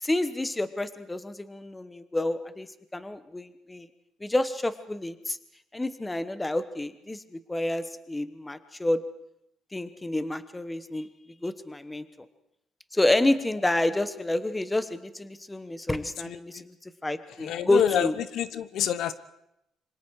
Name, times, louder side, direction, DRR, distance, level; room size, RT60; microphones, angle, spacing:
voice 1, 0.0-2.7 2.9-3.9 4.2-5.4 5.7-7.2 7.5-9.0 9.7-11.1 11.4-12.0 12.9-16.7 17.0-18.1, left 2 dB, 10° left, 12 dB, 1.1 m, -28 dB
voice 2, 16.2-16.6 17.4-19.1, left 10 dB, 65° left, 14 dB, 1.1 m, -28 dB
27.0 x 25.5 x 4.8 m, 0.81 s
cardioid pair, 150°, 0 cm